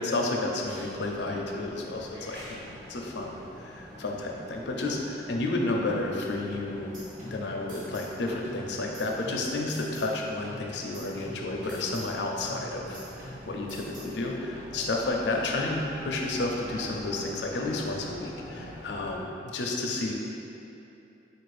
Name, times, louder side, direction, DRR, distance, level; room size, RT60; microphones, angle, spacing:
voice 1, 0.0-6.9 7.3-20.1, left 2 dB, 70° left, 0 dB, 0.5 m, -31 dB
sound 1, 0.6-19.2, left 1 dB, 25° right, 1.0 m, -46 dB
sound 2, 6.5-8.2 8.4-10.2 10.4-12.2 12.4-14.2, equal, 45° right, 0.8 m, -46 dB
4.4 x 2.5 x 4.8 m, 2.8 s
head